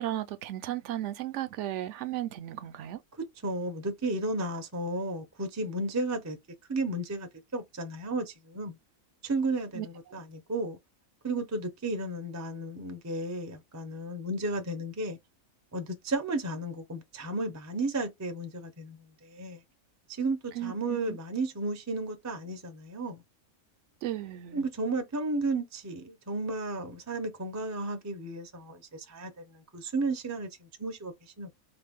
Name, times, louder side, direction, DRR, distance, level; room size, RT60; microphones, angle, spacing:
voice 1, 0.0-3.0 9.7-9.9 20.5-21.2 24.0-24.7, right 13 dB, 70° right, 0.8 m, -35 dB
voice 2, 3.2-6.4 6.7-8.8 9.2-10.8 11.2-15.2 15.7-19.6 20.1-23.2 24.5-31.5, right 2 dB, 20° right, 0.4 m, -33 dB
3.9 x 2.1 x 3.5 m
omnidirectional pair, 1.4 m